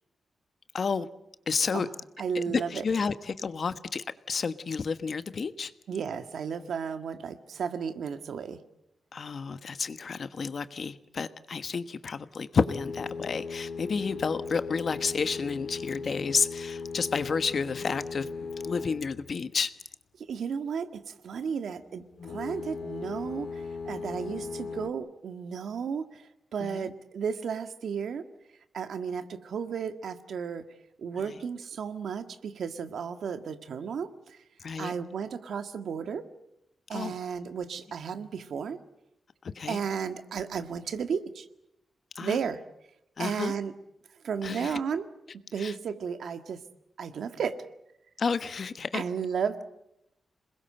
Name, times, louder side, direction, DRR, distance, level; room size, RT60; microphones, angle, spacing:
voice 1, 0.7-1.1 1.5-1.9 2.3-5.7 9.1-18.3 18.6-19.8 26.6-26.9 31.2-31.4 34.6-34.9 36.9-37.1 39.4-39.8 42.1-42.4 43.2-43.5 44.4-44.8 45.6-45.7 48.2-49.0, left 5 dB, 50° left, 12 dB, 1.2 m, -31 dB
voice 2, 2.2-2.9 5.9-8.6 20.2-28.2 28.7-30.6 31.0-34.4 34.8-36.2 36.9-38.8 39.7-41.5 42.2-42.6 43.2-43.7 44.2-45.1 45.5-46.6 47.0-47.6 48.9-49.6, right 6 dB, 75° right, 9 dB, 1.7 m, -33 dB
sound 1, 12.6-19.5 22.1-24.9, left 4 dB, 80° left, 2.0 m, -38 dB
27.5 x 21.0 x 7.8 m, 0.84 s
wide cardioid pair, 120°, 0 cm